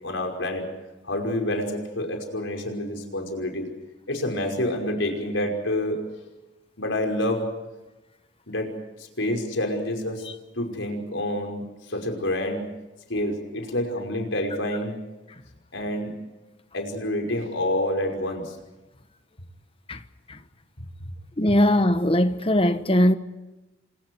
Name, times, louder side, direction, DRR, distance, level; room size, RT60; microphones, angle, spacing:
voice 1, 0.0-0.7 1.0-3.7 4.1-6.0 6.8-7.5 8.5-10.3 10.6-12.7 13.1-15.0 15.7-16.2 16.7-18.6, left 1 dB, 85° left, 5.5 m, -28 dB
voice 2, 21.4-23.1, left 1 dB, 30° left, 1.2 m, -20 dB
29.5 x 27.0 x 4.7 m
head